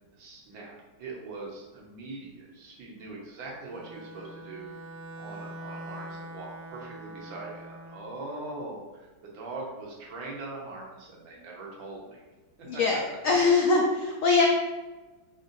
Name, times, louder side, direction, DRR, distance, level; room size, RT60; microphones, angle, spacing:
voice 1, 0.1-4.7 5.2-12.2 12.7-13.0, right 2 dB, 90° right, -3 dB, 1.8 m, -41 dB
Bowed string instrument, 3.6-8.1, right 1 dB, 65° right, 1.4 m, -43 dB
voice 2, 12.7-14.4, left 4 dB, 80° left, 0 dB, 0.7 m, -23 dB
4.7 x 3.9 x 2.6 m, 1.2 s
omnidirectional pair, 2.0 m